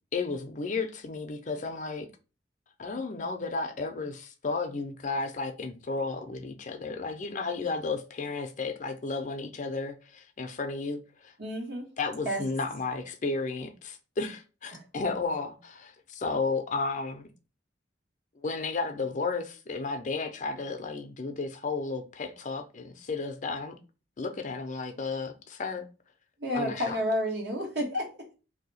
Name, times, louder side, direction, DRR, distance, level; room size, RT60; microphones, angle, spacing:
voice 1, 0.1-2.1 2.8-11.3 12.0-17.3 18.4-23.7 24.2-25.9 26.5-27.0, left 3 dB, 45° left, 0.5 m, -33 dB
voice 2, 11.4-11.9 12.2-12.4 14.7-14.8 26.4-28.1, equal, 65° right, 1.3 m, -30 dB
2.7 x 2.3 x 3.9 m
head